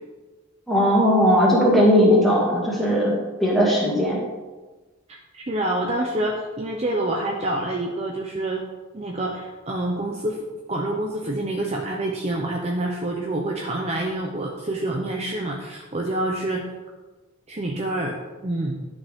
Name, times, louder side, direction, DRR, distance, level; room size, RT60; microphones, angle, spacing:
voice 1, 0.7-3.1 3.4-4.2, equal, ahead, -6 dB, 2.2 m, -18 dB
voice 2, 5.1-8.6 8.9-10.4 10.7-16.7 17.5-18.8, right 1 dB, 30° right, 0 dB, 0.6 m, -27 dB
11.5 x 5.3 x 3.5 m, 1.2 s
head